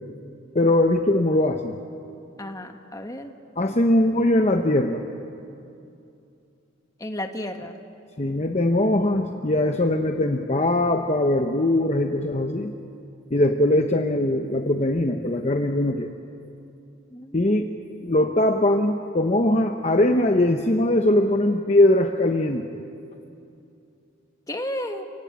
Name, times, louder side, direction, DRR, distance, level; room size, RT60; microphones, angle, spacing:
voice 1, 0.5-1.8 3.6-5.0 8.2-12.7 13.3-16.1 17.3-17.7 18.0-22.7, left 1 dB, 35° left, 5 dB, 0.9 m, -21 dB
voice 2, 2.4-3.3 7.0-7.8 17.1-17.4 24.5-25.0, left 1 dB, 20° left, 5 dB, 1.5 m, -32 dB
29.5 x 17.5 x 8.7 m, 2.6 s
head